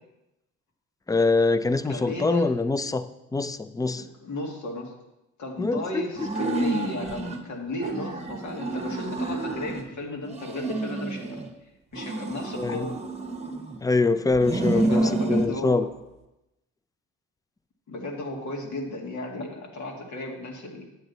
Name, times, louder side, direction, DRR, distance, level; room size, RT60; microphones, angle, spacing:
voice 1, 1.1-4.1 5.6-6.3 12.6-12.9 13.8-15.9, left 3 dB, 10° left, 13 dB, 0.4 m, -24 dB
voice 2, 1.9-2.5 4.0-4.9 5.4-11.4 11.9-13.0 14.9-15.9 17.9-20.8, left 2 dB, 70° left, 0 dB, 2.0 m, -34 dB
sound 1, 6.2-7.4 7.8-9.9 10.3-11.5 11.9-13.8 14.3-15.5, right 2 dB, 20° right, 1.2 m, -29 dB
9.2 x 7.8 x 4.0 m, 0.94 s
cardioid pair, 90°, 30 cm